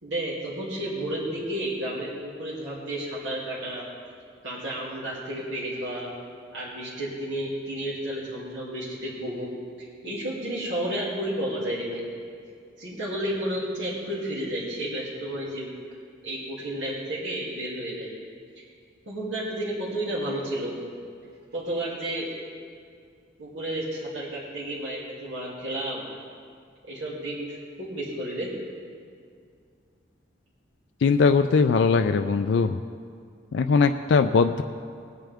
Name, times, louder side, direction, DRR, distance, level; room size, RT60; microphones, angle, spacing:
voice 1, 0.0-3.8 4.4-6.1 6.5-12.0 12.8-15.7 16.2-18.1 19.1-20.8 21.5-22.3 23.4-26.1 26.9-28.5, right 1 dB, 90° right, -8 dB, 2.6 m, -32 dB
voice 2, 31.0-32.8 33.5-34.6, left 5 dB, 75° left, 7 dB, 0.4 m, -20 dB
20.0 x 9.1 x 3.5 m, 2.2 s
head